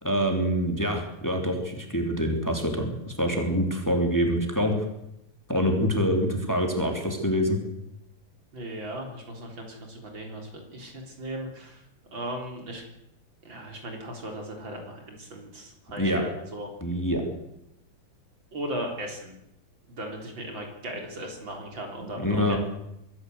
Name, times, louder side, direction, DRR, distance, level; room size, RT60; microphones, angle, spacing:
voice 1, 0.0-4.7 5.5-7.6 16.0-16.2 16.8-17.2 22.2-22.6, equal, 10° left, 3 dB, 3.0 m, -25 dB
voice 2, 8.5-11.8 12.1-12.8 13.4-16.7 18.5-19.3 19.9-22.6, right 1 dB, 60° right, 2 dB, 4.7 m, -37 dB
24.0 x 14.0 x 8.0 m, 0.83 s
omnidirectional pair, 2.4 m